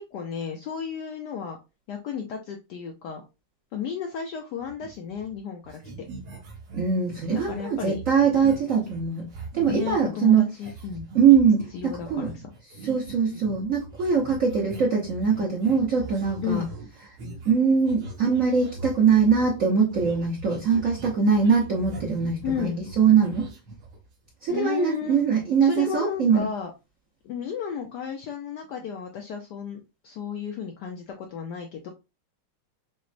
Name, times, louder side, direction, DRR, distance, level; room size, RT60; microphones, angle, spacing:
voice 1, 0.0-1.6 1.9-3.2 3.7-5.8 7.5-8.0 9.7-11.1 11.7-12.4 16.4-16.7 22.4-22.8 24.5-25.2 25.6-26.7 27.2-31.9, left 7 dB, 75° left, 1.0 m, -33 dB
sound 1, 4.6-5.4 5.6-10.1 10.6-24.3, right 3 dB, 90° right, 1.8 m, -42 dB
voice 2, 6.7-9.2 9.5-10.5 11.1-12.3 12.8-16.6 17.5-22.7 23.0-23.5 24.4-26.4, right 6 dB, 60° right, 0.8 m, -22 dB
6.0 x 2.1 x 2.5 m
omnidirectional pair, 2.3 m